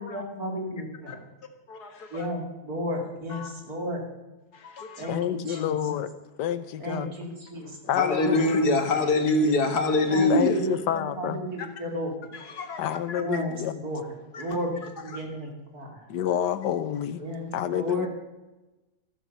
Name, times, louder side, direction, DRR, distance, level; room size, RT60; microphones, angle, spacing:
voice 1, 0.0-1.1 2.1-4.0 5.0-5.7 6.8-7.8 8.2-8.7 10.1-12.1 13.2-13.5 13.8-15.5 15.7-16.0 17.2-18.1, equal, 60° right, 3.4 m, -33 dB
voice 2, 1.7-2.3 3.3-3.5 4.5-5.2 5.5-5.6 7.9-10.8 11.6-11.7 12.3-13.2 14.3-15.3, left 2 dB, 70° left, 2.2 m, -26 dB
voice 3, 5.1-6.1 6.4-7.1 7.6-8.4 10.3-11.4 12.8-13.7 16.1-17.2 17.5-18.1, left 10 dB, 90° left, 1.4 m, -28 dB
14.0 x 13.5 x 5.5 m
omnidirectional pair, 1.8 m